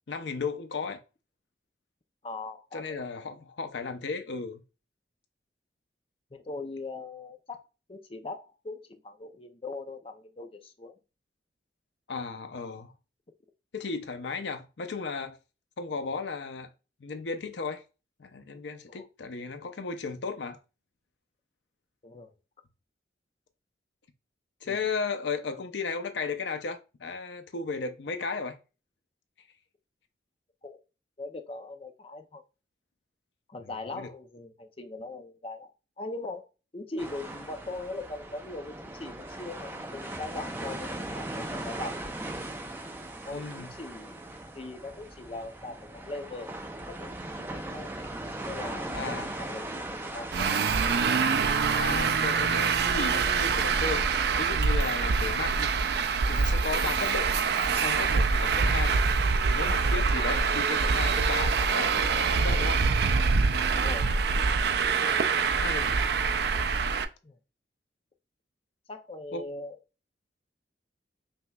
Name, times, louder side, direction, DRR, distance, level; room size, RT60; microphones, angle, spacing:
voice 1, 0.1-1.0 2.7-4.6 12.1-12.9 13.7-15.4 15.8-16.7 17.0-17.8 18.2-20.6 24.6-28.6 33.6-34.1 43.3-43.7 48.9-49.3 51.8-54.0 54.4-57.4 57.7-59.0 59.5-62.8 65.2-66.0 69.3-69.4, left 4 dB, 90° left, 0.6 m, -35 dB
voice 2, 2.2-3.0 6.3-7.6 7.9-10.9 18.9-19.1 22.0-22.3 24.6-24.9 30.6-30.8 31.2-32.4 33.5-36.5 36.7-42.1 43.3-44.2 44.5-46.6 46.9-47.1 47.3-47.9 48.4-50.6 63.8-64.3 64.8-65.4 67.2-67.4 68.9-69.8, left 2 dB, 30° left, 0.6 m, -40 dB
sound 1, 37.0-54.2, right 1 dB, 10° right, 0.6 m, -39 dB
Traffic noise roadway noise, 50.3-67.0, right 5 dB, 65° right, 0.4 m, -25 dB
5.5 x 3.0 x 2.3 m
head